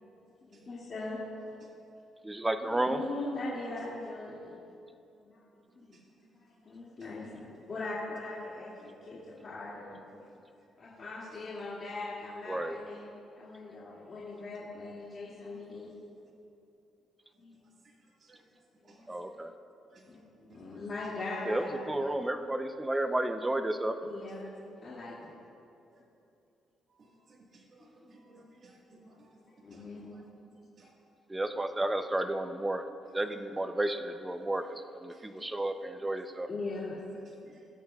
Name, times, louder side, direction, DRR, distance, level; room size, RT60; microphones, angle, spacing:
voice 1, 0.4-1.2 2.6-4.6 5.2-5.4 5.8-6.0 6.3-10.1 10.8-15.9 17.4-17.7 18.8-19.1 19.9-22.1 24.0-24.5 24.8-25.2 25.9-26.0 28.0-28.2 28.9-29.1 29.6-30.2 36.5-37.0, left 2 dB, 45° left, -8 dB, 2.3 m, -41 dB
voice 2, 2.2-3.0 12.5-12.8 19.1-19.5 21.5-23.9 31.3-32.8 33.1-36.5, right 1 dB, 15° right, 8 dB, 0.6 m, -32 dB
voice 3, 5.7-6.3 8.8-8.9 9.3-9.4 10.1-10.5 14.3-14.4 15.3-16.0 17.6-18.5 18.8-19.1 19.9-20.0 20.5-20.8 24.2-24.3 24.8-25.1 25.9-26.0 26.9-30.2 30.5-30.9 34.6-34.7 35.1-35.7 37.2-37.7, right 2 dB, 50° right, -3 dB, 1.6 m, -61 dB
19.5 x 8.6 x 2.4 m, 2.7 s
cardioid pair, 90°, 0 cm